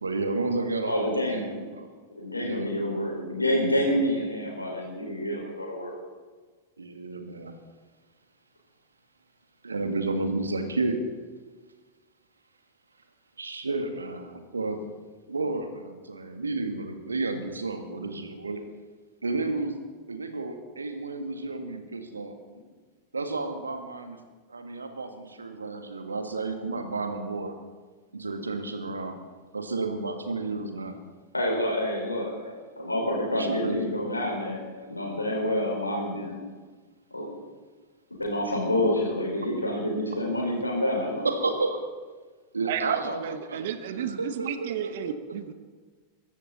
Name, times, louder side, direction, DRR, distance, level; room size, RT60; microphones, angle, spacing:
voice 1, 0.0-1.9 2.4-2.7 6.8-7.5 9.6-11.0 13.4-14.8 15.3-18.6 19.2-19.8 20.1-22.4 23.1-24.2 24.5-27.5 28.1-29.2 29.5-31.0 33.4-33.8 41.2-41.8 42.5-45.4, right 3 dB, 75° right, 6 dB, 1.8 m, -31 dB
voice 2, 0.8-1.6 2.1-5.9 31.3-34.6 34.9-36.4 37.1-37.3 38.2-41.3, left 1 dB, 85° left, -2 dB, 4.9 m, -28 dB
voice 3, 43.5-45.5, right 10 dB, 55° right, 12 dB, 1.1 m, -31 dB
22.5 x 13.0 x 4.2 m, 1.4 s
figure-of-eight pair, 90°, 0 cm